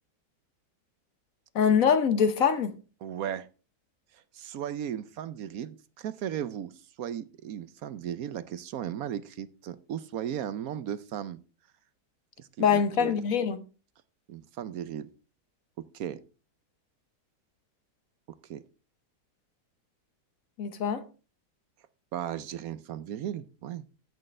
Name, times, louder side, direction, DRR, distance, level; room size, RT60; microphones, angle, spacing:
voice 1, 1.5-2.7 12.6-13.6 20.6-21.0, left 7 dB, 60° left, 1.2 m, -24 dB
voice 2, 3.0-3.5 4.1-6.7 7.0-11.4 12.4-13.1 14.3-15.1 15.8-16.2 18.5-18.6 22.1-23.8, right 10 dB, 70° right, 1.1 m, -36 dB
15.0 x 6.5 x 3.2 m
omnidirectional pair, 1.7 m